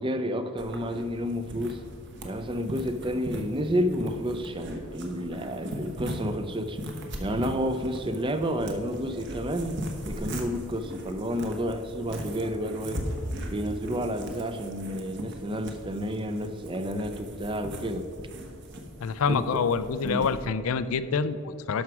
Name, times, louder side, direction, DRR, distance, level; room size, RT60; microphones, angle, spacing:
voice 1, 0.0-1.8 2.2-6.8 7.2-9.8 10.1-13.0 13.5-18.1 19.2-19.6 20.0-20.3, equal, 20° right, 8 dB, 0.5 m, -30 dB
sound 1, 0.6-20.5, equal, 55° right, 1.1 m, -39 dB
voice 2, 19.0-21.8, left 5 dB, 70° left, 13 dB, 0.4 m, -27 dB
11.5 x 6.0 x 4.8 m, 2.5 s
head